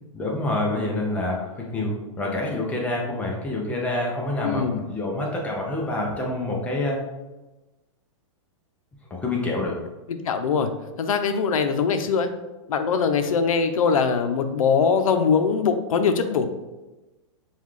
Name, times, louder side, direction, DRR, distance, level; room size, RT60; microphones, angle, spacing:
voice 1, 0.1-7.0 9.1-9.8, left 2 dB, 10° left, -1 dB, 0.4 m, -27 dB
voice 2, 4.4-4.8 10.1-10.7 11.0-12.3 12.7-16.5, left 5 dB, 90° left, 8 dB, 0.5 m, -22 dB
5.4 x 2.3 x 3.2 m, 1.1 s
hypercardioid pair, 160°, 17 cm